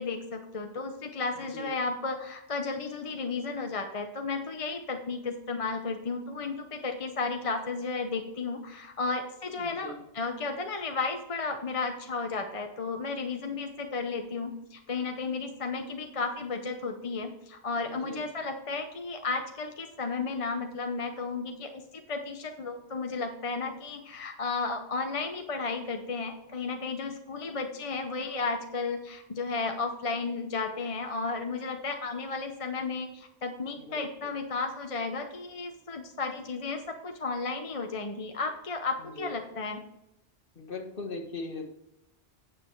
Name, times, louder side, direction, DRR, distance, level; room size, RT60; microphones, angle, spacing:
voice 1, 0.0-39.8, left 4 dB, 35° left, 5 dB, 0.8 m, -33 dB
voice 2, 1.4-1.8 9.5-10.0 17.8-18.3 33.8-34.4 39.0-39.4 40.5-41.7, left 2 dB, 50° left, 2 dB, 1.6 m, -40 dB
9.2 x 7.4 x 4.6 m, 0.87 s
omnidirectional pair, 1.2 m